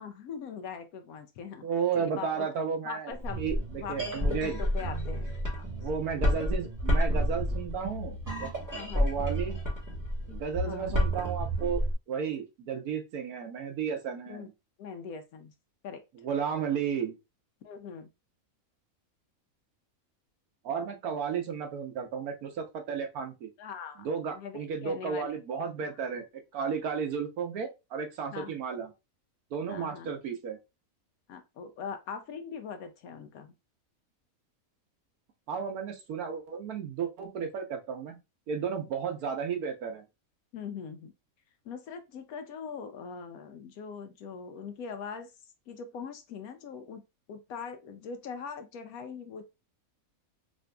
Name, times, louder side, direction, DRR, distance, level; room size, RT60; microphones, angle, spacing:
voice 1, 0.0-1.7 1.9-2.3 2.8-5.7 8.7-9.1 10.6-10.9 14.3-14.5 14.8-15.5 15.8-16.0 17.6-18.1 23.6-24.1 24.3-25.4 25.8-25.9 28.3-28.6 29.7-30.1 31.3-33.5 40.5-41.1 41.6-45.3 45.7-47.0 47.3-49.4, left 6 dB, 80° left, 1.0 m, -41 dB
voice 2, 1.6-4.6 5.8-8.5 8.9-9.6 10.3-11.8 12.1-14.5 16.2-17.1 20.6-23.5 24.0-26.2 26.5-28.9 29.5-30.6 35.5-38.2 38.5-40.0, right 6 dB, 85° right, 1.3 m, -33 dB
sound 1, 3.1-11.9, equal, 15° right, 1.2 m, -30 dB
4.9 x 2.7 x 2.2 m
omnidirectional pair, 1.5 m